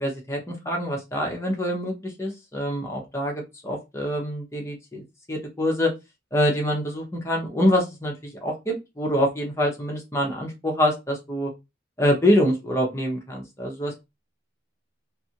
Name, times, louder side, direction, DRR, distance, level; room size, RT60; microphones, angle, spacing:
voice 1, 0.0-5.9 6.3-11.5 12.0-14.0, equal, 15° left, 0 dB, 0.7 m, -25 dB
2.5 x 2.5 x 2.8 m, 0.23 s
head